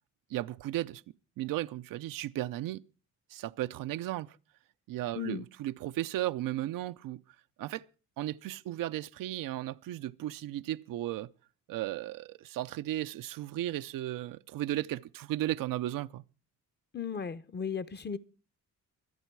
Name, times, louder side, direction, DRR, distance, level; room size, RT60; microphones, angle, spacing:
voice 1, 0.3-1.0 1.4-2.8 3.3-4.4 4.9-7.2 7.6-7.8 8.2-11.3 11.7-16.2, right 14 dB, 85° right, 0.7 m, -35 dB
voice 2, 16.9-18.2, left 6 dB, 30° left, 0.8 m, -36 dB
24.5 x 8.3 x 4.6 m
cardioid pair, 110°, 33 cm